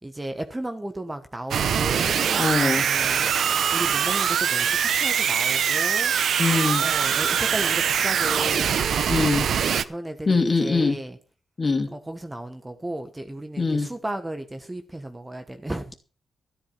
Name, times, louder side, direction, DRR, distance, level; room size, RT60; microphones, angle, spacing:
voice 1, 0.0-2.2 2.5-3.3 3.7-6.1 6.8-11.2 11.9-16.0, right 1 dB, 15° right, 1.3 m, -34 dB
sound 1, 1.5-9.8, right 8 dB, 80° right, 0.8 m, -23 dB
voice 2, 2.3-2.9 6.4-6.8 9.1-9.5 10.3-11.0 11.6-11.9 13.6-13.9, left 3 dB, 35° left, 2.8 m, -22 dB
13.5 x 11.5 x 5.8 m
wide cardioid pair, 115°, 0 cm